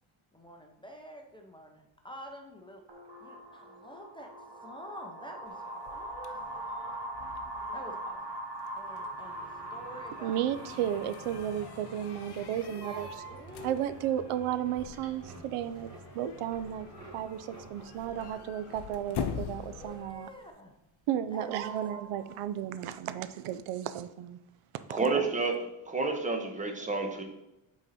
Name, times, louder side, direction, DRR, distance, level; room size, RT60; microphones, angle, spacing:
voice 1, 0.3-2.8 3.2-5.6 5.9-7.1 7.7-8.2 8.8-10.4 12.7-13.9 19.7-20.8 21.3-21.8 24.9-25.1, equal, 10° left, 1 dB, 0.5 m, -48 dB
sound 1, 2.9-12.4, right 1 dB, 50° right, 1.5 m, -41 dB
sound 2, 5.5-20.5, left 8 dB, 55° left, 0.6 m, -45 dB
sound 3, 8.9-20.4 20.7-21.2 21.5-22.8, right 3 dB, 35° right, 1.7 m, -49 dB
voice 2, 10.2-13.1 13.6-15.9 16.1-16.9 17.1-20.3 21.1-24.4, right 10 dB, 90° right, 13 dB, 0.6 m, -33 dB
voice 3, 24.9-27.2, right 3 dB, 15° right, 4 dB, 0.8 m, -30 dB
8.1 x 4.0 x 4.1 m, 0.91 s
cardioid pair, 165°, 50 cm